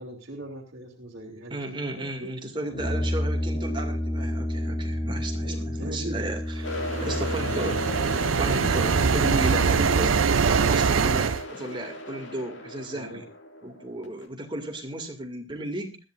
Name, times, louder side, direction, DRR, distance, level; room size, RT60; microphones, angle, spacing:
voice 1, 0.0-2.5 5.4-6.4 6.9-7.3 12.9-13.2, right 1 dB, 55° right, -4 dB, 2.8 m, -40 dB
voice 2, 1.5-6.6 7.0-7.8 8.2-13.3 13.6-16.0, right 1 dB, 25° right, 4 dB, 2.5 m, -34 dB
Brass instrument, 2.7-10.2, equal, 40° left, 3.0 m, -31 dB
sound 1, 6.6-14.3, left 1 dB, 65° left, 2.4 m, -36 dB
sound 2, 6.7-11.4, right 5 dB, 85° right, 0.6 m, -23 dB
20.0 x 14.0 x 2.6 m, 0.29 s
head